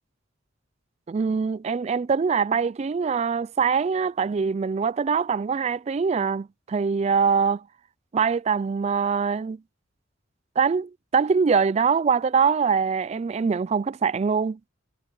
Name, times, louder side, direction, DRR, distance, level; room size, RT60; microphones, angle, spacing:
voice 1, 1.1-7.6 8.1-9.6 10.6-14.6, right 5 dB, 35° right, 0.3 m, -23 dB
head